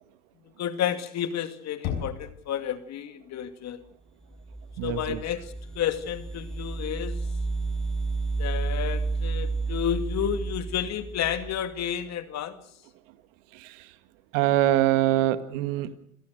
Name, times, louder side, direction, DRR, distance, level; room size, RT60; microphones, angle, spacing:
voice 1, 0.6-3.8 4.8-5.5 5.8-7.2 8.4-12.6, left 10 dB, 45° left, 10 dB, 2.5 m, -31 dB
Knock, 1.8-2.7, left 8 dB, 65° left, 6.4 m, -34 dB
sound 1, 4.3-11.9, right 3 dB, ahead, 2.7 m, -31 dB
voice 2, 4.8-5.2 13.5-13.9 14.3-16.0, right 13 dB, 70° right, 12 dB, 1.8 m, -24 dB
28.5 x 17.0 x 6.6 m, 0.67 s
supercardioid pair, 105°, 39 cm